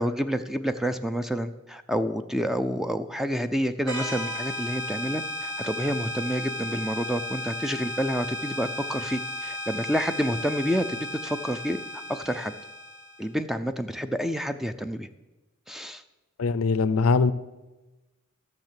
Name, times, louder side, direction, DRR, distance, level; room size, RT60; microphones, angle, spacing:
voice 1, 0.0-11.0 11.2-12.5 13.2-15.1 15.7-16.0, equal, ahead, 10 dB, 0.4 m, -29 dB
sound 1, 3.9-13.3, left 1 dB, 60° right, 2.3 m, -34 dB
voice 2, 16.4-17.3, left 4 dB, 70° left, 16 dB, 0.5 m, -22 dB
12.0 x 6.6 x 7.5 m, 1.1 s
head